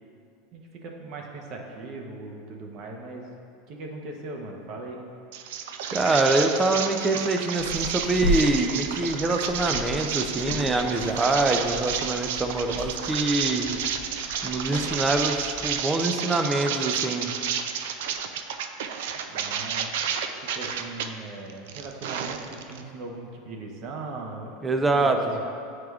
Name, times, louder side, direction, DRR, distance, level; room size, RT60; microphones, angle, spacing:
voice 1, 0.5-3.3 3.7-5.0 19.3-19.9 20.4-24.6 24.9-25.2, right 3 dB, 45° right, 1 dB, 0.8 m, -39 dB
sound 1, 5.3-21.1 21.5-22.8, right 8 dB, 75° right, 0.3 m, -31 dB
voice 2, 5.9-13.7 14.4-17.3 24.6-25.2, right 2 dB, 10° right, 5 dB, 0.4 m, -25 dB
sound 2, 7.6-15.8, left 1 dB, 80° left, 1.0 m, -35 dB
8.9 x 4.8 x 2.4 m, 2.4 s
supercardioid pair, 145°, 0 cm